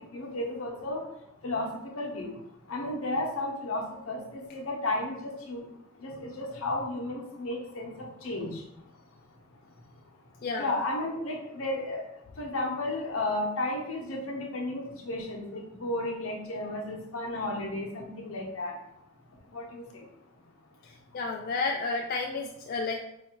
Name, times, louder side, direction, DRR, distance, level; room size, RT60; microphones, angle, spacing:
voice 1, 0.1-1.0 1.4-1.7 2.0-2.3 2.7-5.6 6.0-8.6 10.6-12.0 12.4-18.8 19.5-20.0, left 2 dB, 75° left, 0 dB, 0.8 m, -33 dB
voice 2, 10.4-10.8 20.8-22.9, left 4 dB, 45° left, 1 dB, 0.3 m, -32 dB
4.7 x 2.5 x 2.9 m, 0.82 s
head